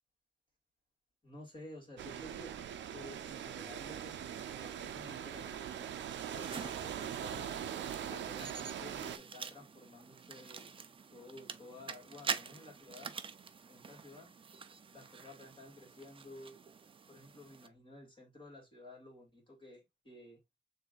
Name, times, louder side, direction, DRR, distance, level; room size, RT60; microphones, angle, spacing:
voice 1, 1.2-2.6 2.9-6.0 6.3-7.5 8.1-10.7 11.1-13.1 13.7-14.3 14.9-16.6 17.1-20.4, left 2 dB, 25° left, 2.4 m, -53 dB
sound 1, 2.0-9.2, right 9 dB, 70° right, 0.6 m, -41 dB
sound 2, 6.4-17.7, right 5 dB, 25° right, 0.4 m, -46 dB
6.6 x 2.7 x 2.4 m
cardioid pair, 105°, 20 cm